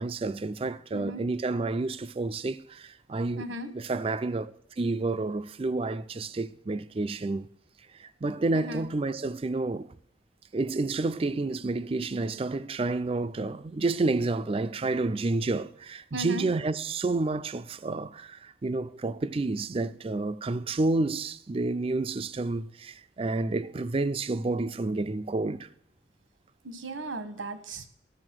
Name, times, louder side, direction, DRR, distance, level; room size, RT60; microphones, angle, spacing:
voice 1, 0.0-7.5 7.9-9.9 10.5-25.7, right 3 dB, 30° right, 0.4 m, -30 dB
voice 2, 0.9-1.2 3.4-3.7 8.5-8.9 16.1-16.5 26.6-27.9, right 1 dB, 85° right, 1.2 m, -37 dB
12.5 x 6.9 x 6.1 m
head